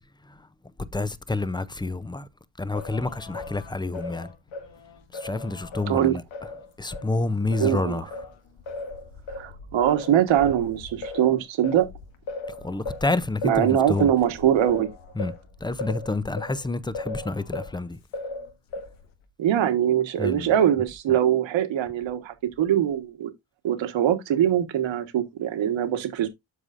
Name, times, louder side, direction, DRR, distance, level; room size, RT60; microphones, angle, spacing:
voice 1, 0.9-2.3 2.6-4.3 5.1-6.2 6.8-8.0 12.6-14.1 15.2-15.3 15.6-18.0 20.2-20.5, left 2 dB, 10° left, 0.5 m, -28 dB
Singing, 2.7-7.1 7.5-17.8 18.1-19.1, left 3 dB, 85° left, 1.6 m, -37 dB
voice 2, 5.9-6.2 7.6-8.0 9.3-11.9 13.4-14.9 19.4-23.3 23.6-26.3, right 10 dB, 80° right, 1.5 m, -22 dB
12.5 x 4.9 x 2.5 m
cardioid pair, 110°, 45 cm